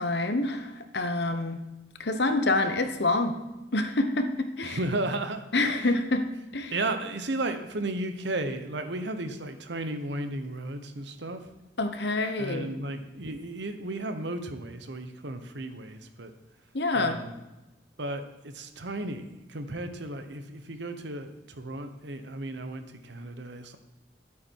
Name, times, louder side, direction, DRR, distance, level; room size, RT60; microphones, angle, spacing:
voice 1, 0.0-1.6 2.0-3.4 3.7-4.8 5.5-6.3 6.5-6.7 11.8-12.7 16.7-17.2, left 2 dB, 60° left, 7 dB, 1.0 m, -27 dB
voice 2, 4.6-6.0 6.7-11.5 12.4-16.3 16.9-17.3 18.0-23.8, right 2 dB, 70° right, 8 dB, 1.1 m, -34 dB
11.0 x 8.6 x 4.7 m, 1.0 s
head